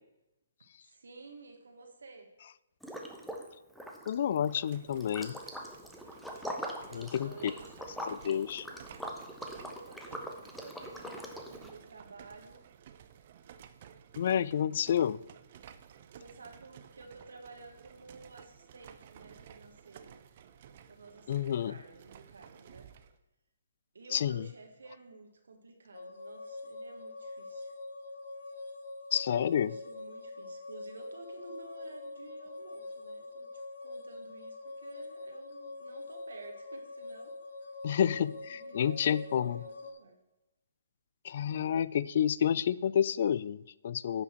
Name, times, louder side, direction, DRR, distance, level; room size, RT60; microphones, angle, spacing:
voice 1, 0.8-2.3 6.8-7.9 9.4-12.6 16.2-20.2 20.9-22.9 23.9-27.7 29.3-37.3 37.9-40.2, right 3 dB, 80° right, 3 dB, 1.4 m, -52 dB
Liquid, 2.8-3.5 3.7-11.7, equal, ahead, 0.9 m, -42 dB
voice 2, 4.1-5.4 6.9-7.5 8.1-8.7 14.2-15.2 21.3-21.8 24.1-24.5 29.1-29.7 37.8-39.6 41.2-44.2, left 9 dB, 55° left, 19 dB, 0.3 m, -29 dB
sound 1, 4.3-23.2, right 8 dB, 45° right, 0.6 m, -55 dB
sound 2, 25.9-39.9, left 2 dB, 70° left, 1.1 m, -45 dB
9.8 x 5.9 x 4.4 m, 0.97 s
hypercardioid pair, 140°, 0 cm